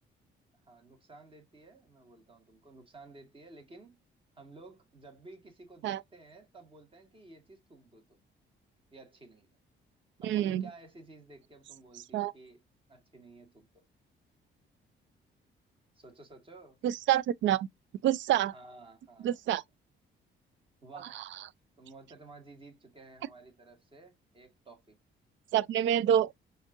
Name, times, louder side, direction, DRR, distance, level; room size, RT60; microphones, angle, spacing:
voice 1, 0.6-4.0 4.3-8.1 8.9-9.5 10.2-12.6 12.9-13.9 16.0-16.8 18.5-19.5 20.8-21.2 21.8-25.0, right 3 dB, 25° right, 1.8 m, -53 dB
voice 2, 10.2-10.6 12.1-12.3 16.8-17.7 18.0-18.5 19.2-19.6 21.1-21.2 25.5-26.3, right 11 dB, 70° right, 0.4 m, -27 dB
5.1 x 2.7 x 2.4 m
cardioid pair, 90°, 20 cm